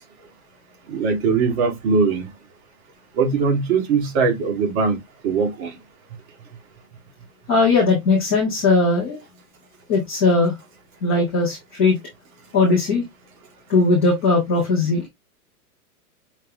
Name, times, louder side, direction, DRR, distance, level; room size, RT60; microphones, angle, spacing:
voice 1, 0.9-2.3 3.2-5.0 5.2-5.7, right 5 dB, 45° right, 1.5 m, -20 dB
voice 2, 7.5-9.2 9.9-10.5 11.0-12.0 12.5-13.0 13.7-15.0, left 3 dB, 10° left, 0.3 m, -18 dB
5.6 x 2.1 x 3.6 m
hypercardioid pair, 145°, 46 cm